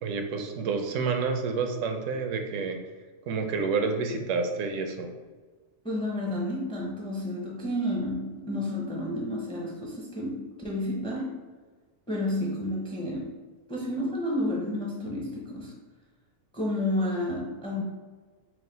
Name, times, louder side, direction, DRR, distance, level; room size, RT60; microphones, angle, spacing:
voice 1, 0.0-2.8 3.3-5.1, right 4 dB, 75° right, 4 dB, 0.9 m, -29 dB
voice 2, 5.8-11.4 12.1-13.3 13.7-15.8 16.5-17.8, left 1 dB, 5° left, -3 dB, 0.5 m, -31 dB
4.7 x 2.1 x 3.9 m, 1.4 s
omnidirectional pair, 1.3 m